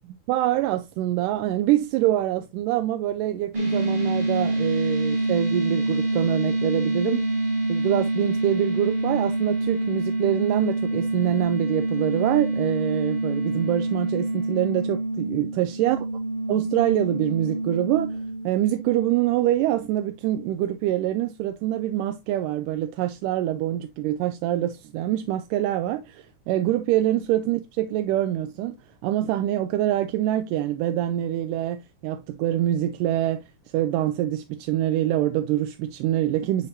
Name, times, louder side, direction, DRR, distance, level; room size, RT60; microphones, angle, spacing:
voice 1, 0.0-7.3 7.7-16.0 16.5-18.2 18.4-28.8 29.0-33.5 33.7-36.7, right 13 dB, 90° right, 2.1 m, -25 dB
sound 1, 3.5-19.1, right 2 dB, 30° right, 0.9 m, -26 dB
10.5 x 3.9 x 2.7 m
omnidirectional pair, 3.7 m